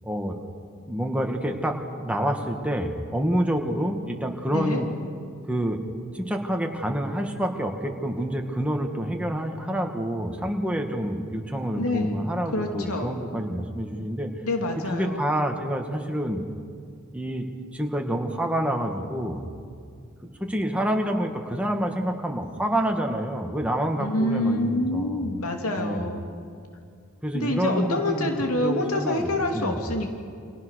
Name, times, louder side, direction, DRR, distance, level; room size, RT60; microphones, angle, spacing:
voice 1, 0.0-0.4 0.9-4.9 5.5-5.8 6.1-14.3 14.9-16.4 17.1-17.5 17.7-19.5 20.2-25.2 25.8-26.1 27.2-28.3 28.6-29.8, equal, 5° right, 2 dB, 2.1 m, -27 dB
voice 2, 11.8-12.2 12.5-13.2 14.4-15.3 24.0-26.3 27.3-30.2, left 1 dB, 85° left, 3 dB, 2.7 m, -27 dB
29.5 x 26.0 x 6.6 m, 2.3 s
head